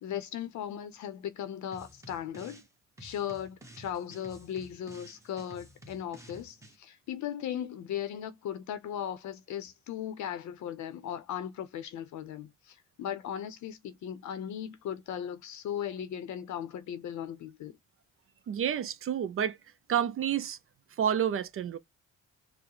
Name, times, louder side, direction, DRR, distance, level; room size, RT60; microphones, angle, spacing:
voice 1, 0.0-2.6 3.0-17.8, left 9 dB, 70° left, 0.7 m, -37 dB
sound 1, 1.7-2.7 3.0-6.8, right 1 dB, 10° right, 0.9 m, -52 dB
voice 2, 18.5-19.6 19.9-20.6 21.0-21.8, right 9 dB, 45° right, 0.5 m, -29 dB
4.7 x 2.0 x 2.9 m
cardioid pair, 90°, 30 cm